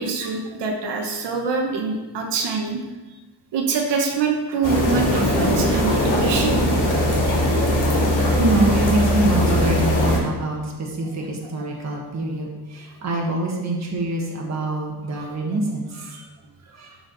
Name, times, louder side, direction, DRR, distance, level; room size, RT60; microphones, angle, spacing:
voice 1, 0.0-2.8 3.5-6.7 16.1-16.2, right 4 dB, 90° right, 1 dB, 1.3 m, -25 dB
sound 1, 4.6-10.2, left 1 dB, 50° left, 2.5 m, -20 dB
voice 2, 8.1-16.2 16.6-17.0, right 2 dB, 40° right, -1 dB, 1.6 m, -25 dB
11.5 x 4.9 x 4.1 m, 1.2 s
wide cardioid pair, 165°, 40 cm